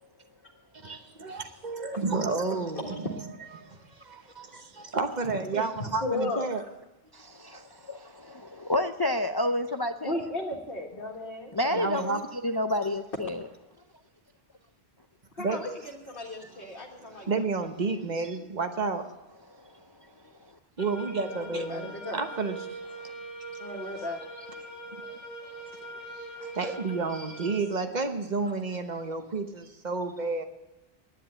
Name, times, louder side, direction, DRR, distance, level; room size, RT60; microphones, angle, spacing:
voice 1, 0.8-3.2 3.5-6.6 11.7-12.2 15.4-15.6 17.0-19.1 20.8-22.9 23.8-23.9 25.0-25.2 26.1-30.4, right 4 dB, 45° right, 1.2 m, -31 dB
voice 2, 6.0-6.6 10.0-11.5 15.3-15.7 16.1-17.3 21.2-22.2 23.6-24.2, left 2 dB, 60° left, 1.8 m, -35 dB
voice 3, 7.1-10.3 11.5-13.5 19.6-19.7 23.0-23.1 26.4-26.5, left 1 dB, 35° left, 0.4 m, -30 dB
sound 1, 20.8-27.7, right 2 dB, 75° right, 3.6 m, -42 dB
10.0 x 9.6 x 9.9 m
omnidirectional pair, 1.0 m